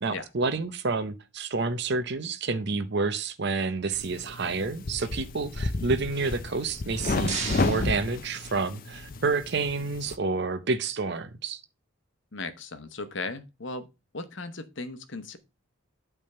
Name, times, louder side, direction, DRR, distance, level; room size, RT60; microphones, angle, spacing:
voice 1, 0.0-11.6, right 3 dB, 50° right, 0.7 m, -29 dB
sound 1, 3.9-10.2, left 2 dB, 40° left, 0.5 m, -32 dB
sound 2, 6.7-8.9, right 5 dB, 30° right, 2.1 m, -37 dB
voice 2, 12.3-13.9 14.1-15.4, left 3 dB, 55° left, 1.0 m, -37 dB
8.7 x 3.5 x 6.6 m
head